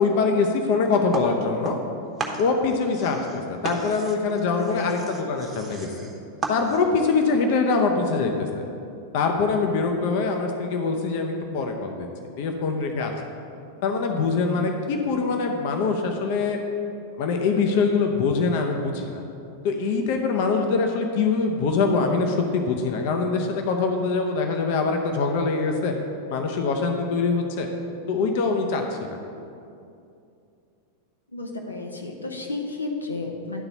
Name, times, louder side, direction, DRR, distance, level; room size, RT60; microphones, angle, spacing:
voice 1, 0.0-1.8 2.4-6.1 6.5-8.6 9.1-12.1 12.4-13.1 13.8-16.6 17.2-19.2 19.6-25.9 26.3-27.7 28.1-29.0, left 4 dB, 50° left, 3 dB, 0.7 m, -23 dB
sound 1, 1.1-1.9 2.2-7.0, right 3 dB, 20° right, 1.0 m, -34 dB
voice 2, 4.4-4.9 31.3-33.6, left 3 dB, 80° left, 1 dB, 0.8 m, -32 dB
11.0 x 3.9 x 5.5 m, 2.6 s
figure-of-eight pair, 90°, 0 cm